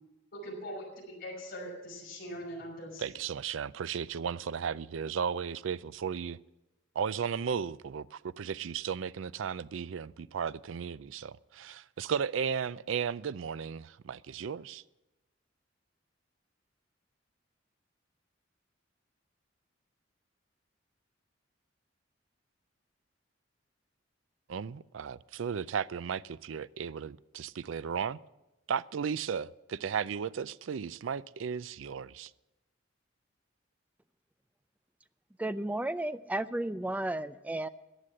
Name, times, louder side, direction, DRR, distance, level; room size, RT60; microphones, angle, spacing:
voice 1, 0.3-3.0, equal, 50° left, 6.0 m, -42 dB
voice 2, 3.0-6.4 7.0-14.8 24.5-28.2 28.7-32.3, right 7 dB, 80° right, 0.4 m, -35 dB
voice 3, 35.4-37.7, right 1 dB, 10° right, 0.4 m, -33 dB
14.0 x 10.0 x 7.6 m
head